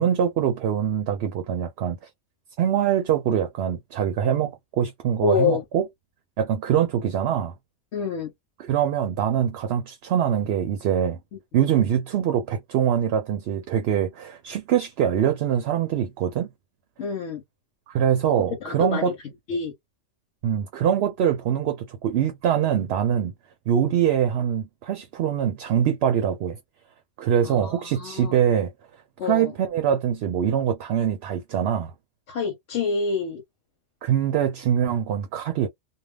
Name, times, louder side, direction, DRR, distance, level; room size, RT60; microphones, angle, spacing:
voice 1, 0.0-2.0 2.6-5.9 6.4-7.5 8.6-11.2 11.5-16.5 17.9-19.1 20.4-23.3 23.7-26.6 27.2-28.7 29.2-31.9 34.0-35.7, right 9 dB, 70° right, 0.8 m, -23 dB
voice 2, 5.2-5.6 7.9-8.3 11.3-11.4 17.0-17.4 18.6-19.1 19.5-19.7 27.4-28.4 29.2-29.5 32.3-33.4, left 5 dB, 75° left, 1.1 m, -27 dB
2.4 x 2.2 x 3.2 m
omnidirectional pair, 1.2 m